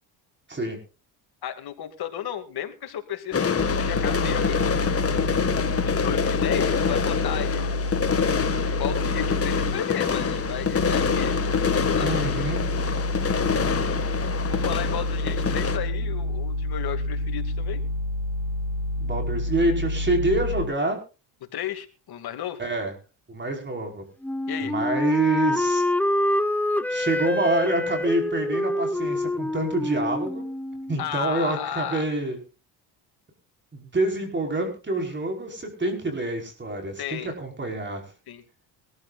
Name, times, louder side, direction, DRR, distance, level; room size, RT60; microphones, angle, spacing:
voice 1, 1.4-4.6 5.7-8.2 8.7-11.3 11.8-12.2 13.7-14.0 14.5-17.8 21.5-22.6 24.5-24.7 31.0-32.0 37.0-37.3 38.3-38.4, left 10 dB, 55° left, 8 dB, 2.5 m, -34 dB
sound 1, 3.3-15.8, left 6 dB, 30° left, 1.9 m, -26 dB
sound 2, 3.6-9.8 10.1-20.6, left 1 dB, 40° right, 5.3 m, -28 dB
voice 2, 12.0-12.6 19.0-21.0 22.6-22.9 23.3-24.0 24.6-25.8 26.9-30.4 30.9-32.4 33.7-38.0, right 2 dB, 25° right, 3 dB, 5.1 m, -27 dB
Wind instrument woodwind instrument, 24.2-31.1, left 1 dB, 5° left, 0.7 m, -26 dB
23.0 x 14.0 x 2.5 m, 0.31 s
cardioid pair, 105°, 44 cm